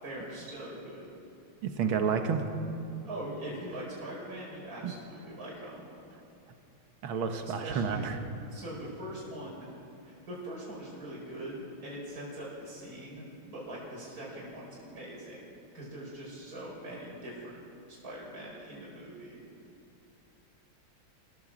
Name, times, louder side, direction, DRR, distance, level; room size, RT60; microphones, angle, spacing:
voice 1, 0.0-1.2 3.0-5.9 7.4-8.0 8.5-9.7 10.0-17.5 17.9-19.4, right 1 dB, 45° right, -5 dB, 5.6 m, -42 dB
voice 2, 1.6-2.5 4.8-4.9 7.0-8.2, right 6 dB, 80° right, 6 dB, 2.2 m, -30 dB
23.5 x 17.0 x 7.4 m, 2.9 s
omnidirectional pair, 2.2 m